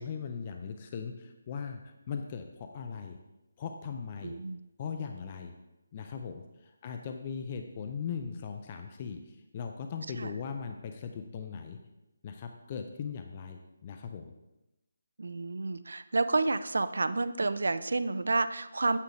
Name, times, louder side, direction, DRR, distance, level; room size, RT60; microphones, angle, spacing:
voice 1, 0.0-1.8 2.1-3.2 3.6-4.4 4.8-5.5 5.9-9.2 9.5-11.8 12.2-14.3, left 6 dB, 20° left, 5 dB, 0.3 m, -39 dB
voice 2, 4.2-4.6 10.2-10.3 15.2-19.0, right 3 dB, 80° right, 13 dB, 0.4 m, -30 dB
8.2 x 3.3 x 5.0 m, 0.96 s
hypercardioid pair, 180°, 0 cm